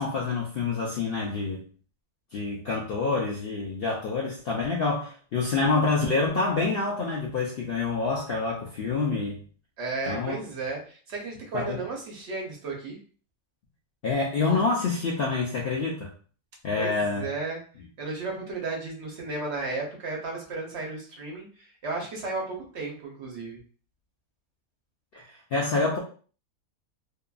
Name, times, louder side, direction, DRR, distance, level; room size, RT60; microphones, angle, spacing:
voice 1, 0.0-1.6 2.3-9.4 10.1-10.4 11.5-11.8 14.0-16.1 16.6-17.2 25.1-26.0, left 4 dB, 65° left, -2 dB, 0.6 m, -27 dB
voice 2, 9.8-13.0 16.8-17.6 18.0-23.6, right 3 dB, 60° right, -1 dB, 0.9 m, -34 dB
2.8 x 2.4 x 2.2 m, 0.41 s
omnidirectional pair, 1.5 m